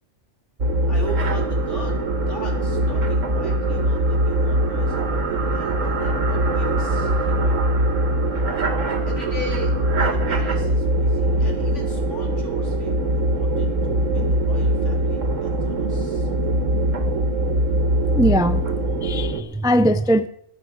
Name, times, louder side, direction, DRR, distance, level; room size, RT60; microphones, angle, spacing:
sound 1, 0.6-19.4, right 1 dB, 85° right, 1.9 m, -22 dB
voice 1, 0.9-7.9 9.1-13.7 14.1-16.3, left 1 dB, 70° left, 1 dB, 4.1 m, -39 dB
voice 2, 18.2-18.7 19.0-20.3, equal, 5° right, 11 dB, 0.5 m, -20 dB
21.5 x 8.4 x 6.3 m, 0.70 s
omnidirectional pair, 1.3 m